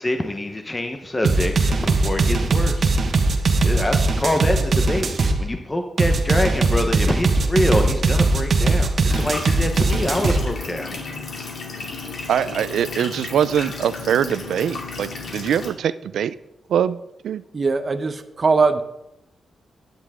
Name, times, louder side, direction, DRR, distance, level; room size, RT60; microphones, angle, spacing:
voice 1, 0.0-2.9 3.6-11.0, left 1 dB, 15° left, 5 dB, 1.0 m, -25 dB
sound 1, 1.2-5.4 6.0-10.4, right 3 dB, 55° right, 1.4 m, -19 dB
sound 2, 9.1-15.7, left 4 dB, 60° left, 2.6 m, -33 dB
voice 2, 12.3-16.3 16.7-17.0 17.2-17.4, right 9 dB, 85° right, 15 dB, 0.5 m, -22 dB
voice 3, 17.5-18.8, right 4 dB, 35° right, 7 dB, 0.9 m, -20 dB
14.0 x 10.0 x 3.7 m, 0.87 s
cardioid pair, 100°, 0 cm